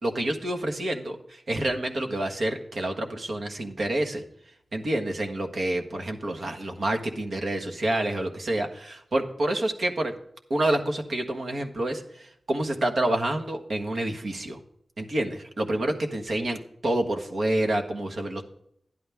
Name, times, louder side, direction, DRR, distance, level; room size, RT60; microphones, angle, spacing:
voice 1, 0.0-4.2 4.7-10.1 10.5-14.6 15.0-18.5, right 1 dB, 75° right, 4 dB, 1.4 m, -28 dB
11.5 x 10.5 x 3.5 m, 0.70 s
cardioid pair, 55°, 0 cm